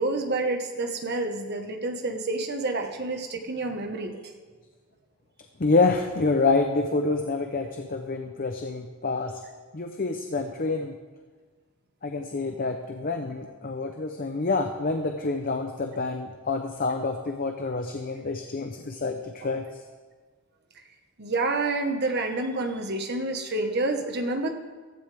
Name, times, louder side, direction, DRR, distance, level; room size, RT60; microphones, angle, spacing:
voice 1, 0.0-4.2 21.2-24.5, right 2 dB, 50° right, 4 dB, 1.5 m, -28 dB
voice 2, 5.6-9.4 9.7-10.9 12.0-19.6, left 3 dB, 40° left, 5 dB, 0.8 m, -27 dB
15.5 x 15.5 x 3.6 m, 1.4 s
head